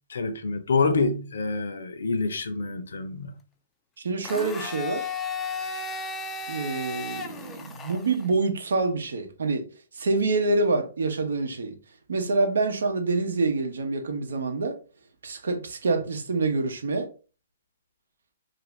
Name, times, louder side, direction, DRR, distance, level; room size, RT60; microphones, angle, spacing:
voice 1, 0.1-3.4, left 3 dB, 80° left, 0.6 m, -27 dB
voice 2, 4.0-5.1 6.5-9.7 9.9-11.8 12.1-14.8 15.2-17.1, right 3 dB, 80° right, 0.8 m, -26 dB
Domestic sounds home sounds, 4.2-8.3, left 4 dB, 15° left, 0.3 m, -34 dB
2.5 x 2.5 x 3.1 m
hypercardioid pair, 145°, 0 cm